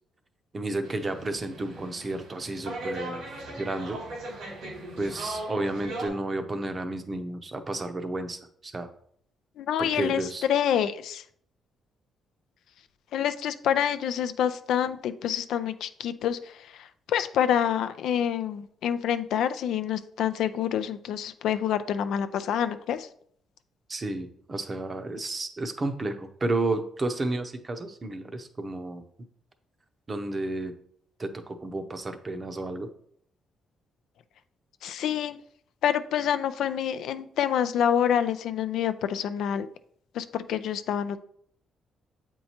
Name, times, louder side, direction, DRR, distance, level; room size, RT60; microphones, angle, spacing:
voice 1, 0.5-4.0 5.0-8.9 9.8-10.4 23.9-29.0 30.1-30.7 31.2-32.9, right 2 dB, 30° right, 8 dB, 0.7 m, -32 dB
sound 1, 0.8-6.1, right 2 dB, 85° right, 2.2 m, -38 dB
voice 2, 9.6-10.2 10.5-11.2 13.1-23.1 34.8-35.4 35.8-39.7 40.1-41.2, left 9 dB, 80° left, 11 dB, 0.3 m, -27 dB
7.5 x 4.5 x 2.8 m, 0.64 s
cardioid pair, 90°, 0 cm